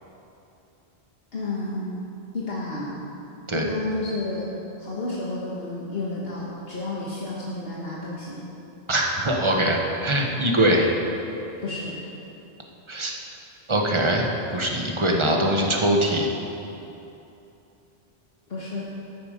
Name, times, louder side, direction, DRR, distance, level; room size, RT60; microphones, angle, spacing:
voice 1, 1.3-1.9 2.3-2.9 3.5-4.5 4.8-8.4 11.6-12.0 18.5-18.9, left 2 dB, 65° left, -6 dB, 1.7 m, -31 dB
voice 2, 8.9-10.9 12.9-13.1 13.7-14.3 14.5-16.3, right 1 dB, 25° right, 0 dB, 1.3 m, -22 dB
14.0 x 9.8 x 5.2 m, 2.9 s
omnidirectional pair, 1.1 m